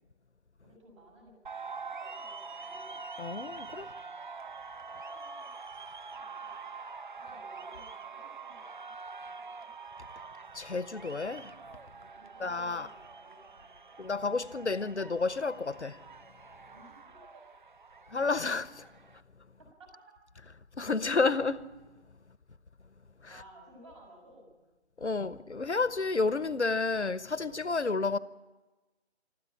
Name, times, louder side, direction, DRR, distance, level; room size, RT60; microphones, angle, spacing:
voice 1, 0.6-3.0 3.9-4.2 5.0-5.8 6.1-9.7 12.0-14.3 16.7-17.6 19.8-19.9 23.3-24.6, right 1 dB, 25° right, 6.2 m, -58 dB
sound 1, 1.5-19.2, right 4 dB, 45° right, 0.6 m, -45 dB
voice 2, 3.2-3.9 10.5-11.5 12.4-12.9 14.0-16.0 18.1-18.9 20.8-21.7 25.0-28.2, left 4 dB, 80° left, 1.1 m, -30 dB
21.5 x 13.5 x 10.0 m
figure-of-eight pair, 150°, 34 cm